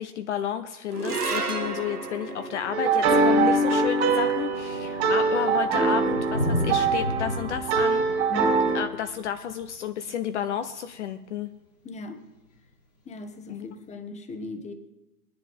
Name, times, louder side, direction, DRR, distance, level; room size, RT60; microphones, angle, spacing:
voice 1, 0.0-8.0 8.7-11.5 13.5-13.7, left 9 dB, 50° left, 9 dB, 0.8 m, -31 dB
sound 1, 0.9-7.4, right 3 dB, 85° right, 1.4 m, -35 dB
Thunder, 2.0-2.1 3.1-3.2 3.4-10.7 12.4-12.5, left 1 dB, 75° left, 5.9 m, -34 dB
sound 2, 2.7-8.8, right 3 dB, 45° right, 2.8 m, -23 dB
voice 2, 11.8-12.2 13.1-14.7, left 2 dB, 15° left, 8 dB, 1.2 m, -38 dB
22.5 x 10.0 x 3.6 m, 1.0 s
figure-of-eight pair, 100°, 45 cm